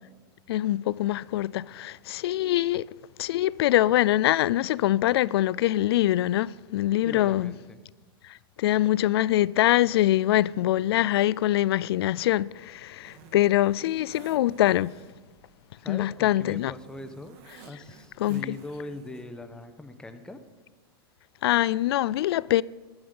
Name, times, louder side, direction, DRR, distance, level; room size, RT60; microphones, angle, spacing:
voice 1, 0.5-2.9 3.2-7.5 8.2-15.0 15.9-16.7 18.2-18.6 21.4-22.6, left 14 dB, 80° left, 0.4 m, -24 dB
voice 2, 7.0-7.9 15.8-17.4 17.6-20.4, left 2 dB, 5° left, 1.0 m, -41 dB
Zipper (clothing), 12.1-19.5, right 5 dB, 50° right, 1.8 m, -54 dB
13.0 x 11.5 x 5.4 m
supercardioid pair, 135°, 13 cm